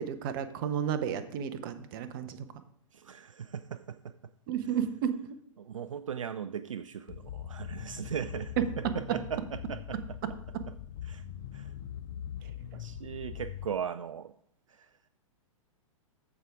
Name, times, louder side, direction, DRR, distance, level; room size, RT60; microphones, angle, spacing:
voice 1, 0.0-2.4 4.5-5.4 8.6-9.2 10.5-10.7 12.4-12.5, right 9 dB, 40° right, 10 dB, 0.8 m, -32 dB
voice 2, 2.9-4.2 5.6-10.0 11.0-11.2 11.5-11.7 12.7-14.3 14.7-15.0, right 8 dB, 70° right, 12 dB, 0.4 m, -38 dB
sound 1, 7.1-13.6, left 9 dB, 40° left, 0.7 m, -42 dB
14.5 x 4.9 x 3.6 m, 0.66 s
figure-of-eight pair, 105°, 17 cm